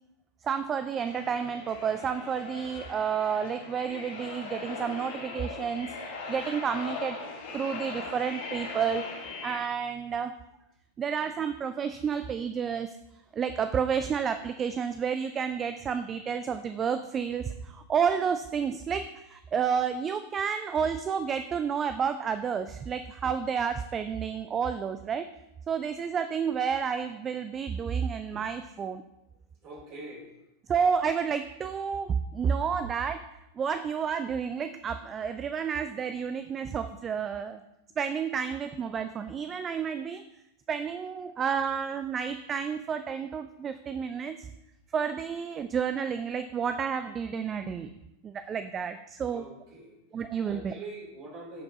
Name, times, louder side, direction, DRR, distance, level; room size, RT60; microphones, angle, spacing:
voice 1, 0.4-6.0 6.3-10.3 11.0-13.0 13.3-25.3 25.7-29.0 30.7-33.2 33.6-37.6 38.0-40.2 40.7-44.5 44.9-47.9 48.2-49.5 50.1-50.8, right 7 dB, 25° right, 10 dB, 0.3 m, -30 dB
sound 1, 1.0-9.6, left 4 dB, 55° left, 1.2 m, -40 dB
voice 2, 29.6-30.3 49.3-50.0 50.4-51.6, right 2 dB, 40° right, -3 dB, 2.7 m, -43 dB
13.5 x 4.5 x 2.7 m, 0.90 s
figure-of-eight pair, 90°, 0 cm